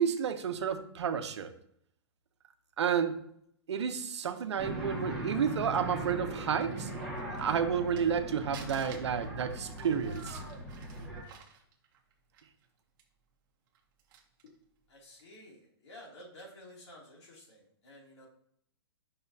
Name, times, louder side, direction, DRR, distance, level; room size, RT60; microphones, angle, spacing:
voice 1, 0.0-1.5 2.8-3.2 3.7-6.9 7.4-10.4, right 7 dB, 90° right, 9 dB, 0.8 m, -31 dB
sound 1, 4.6-11.2, right 1 dB, ahead, 1.4 m, -39 dB
Crumpling crinkling, 5.2-8.2 8.5-12.7 13.0-13.1 13.7-14.6 15.1-15.4, right 7 dB, 50° right, 1.1 m, -53 dB
voice 2, 14.9-18.3, left 1 dB, 80° left, -2 dB, 2.6 m, -52 dB
6.9 x 5.6 x 2.7 m, 0.70 s
hypercardioid pair, 155°, 14 cm